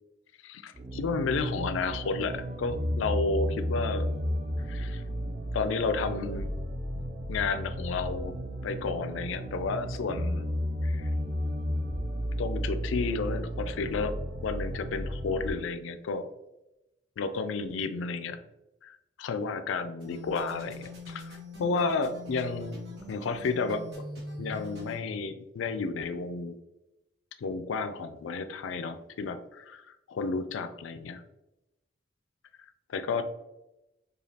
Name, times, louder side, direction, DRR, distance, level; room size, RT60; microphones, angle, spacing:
voice 1, 0.4-4.1 4.7-5.0 5.5-6.5 7.0-8.4 8.6-10.5 10.8-11.1 12.4-14.2 14.4-16.2 17.2-18.4 18.8-22.8 23.1-24.0 24.4-26.6 27.4-29.8 30.1-31.2 32.9-33.2, left 4 dB, 80° left, 10 dB, 0.3 m, -32 dB
sound 1, 0.7-15.5, equal, 40° right, 0.4 m, -33 dB
sound 2, 20.0-25.0, left 1 dB, 55° right, 1.3 m, -43 dB
5.0 x 2.3 x 2.7 m, 0.93 s
head